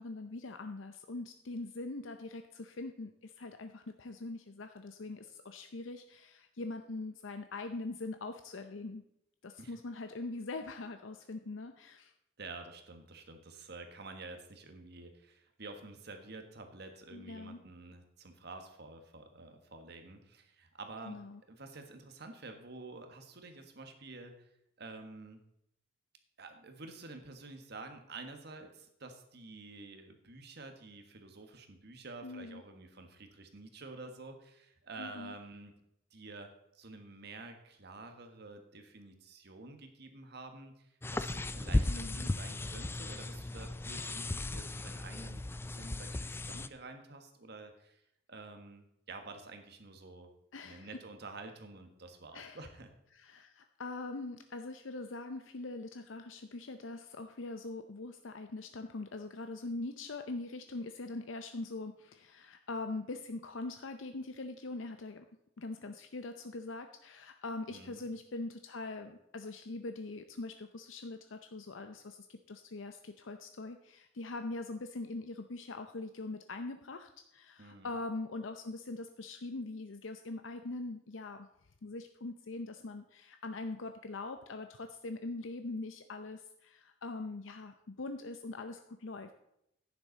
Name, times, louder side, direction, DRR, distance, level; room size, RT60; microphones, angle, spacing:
voice 1, 0.0-9.0 9.4-12.1 17.1-17.6 21.1-21.4 32.2-32.6 35.0-35.3 41.9-42.3 50.5-50.9 52.3-52.6 53.1-65.3 65.6-81.5 81.8-89.3, left 2 dB, 85° left, 7 dB, 0.7 m, -42 dB
voice 2, 12.4-21.2 21.5-24.5 24.8-25.4 26.4-35.8 36.1-48.0 48.3-50.3 50.6-52.9 67.7-68.0 77.6-78.0, right 3 dB, 60° right, 6 dB, 1.5 m, -49 dB
sound 1, 41.0-46.7, left 2 dB, 10° left, 0.3 m, -36 dB
11.0 x 9.7 x 4.1 m, 0.79 s
head